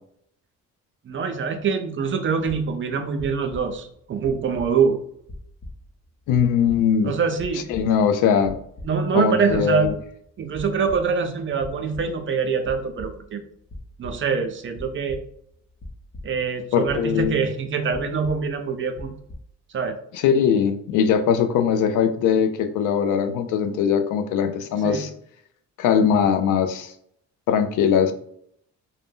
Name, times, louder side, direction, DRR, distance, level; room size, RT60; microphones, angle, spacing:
voice 1, 1.1-5.0 7.0-7.6 8.8-9.9 10.4-13.4 14.0-15.2 16.2-19.1 19.7-20.0 24.8-25.1, right 5 dB, 40° right, 6 dB, 0.5 m, -24 dB
sound 1, 2.5-2.9 3.2-3.9 4.2-5.0 5.3-6.0 6.3-7.1 7.4-8.2 8.4-9.2 9.5-10.1 10.4-11.3 11.6-12.4 12.6-13.4 13.7-14.3 14.7-16.6 16.9-17.6 17.9-18.7 18.9-19.3, left 1 dB, 45° left, 0.8 m, -40 dB
voice 2, 6.3-7.1 7.7-8.6 9.1-9.9 16.7-17.4 20.1-25.1 25.8-26.9 27.5-28.1, left 7 dB, 90° left, 8 dB, 0.5 m, -20 dB
2.6 x 2.1 x 3.5 m, 0.69 s
cardioid pair, 90°, 30 cm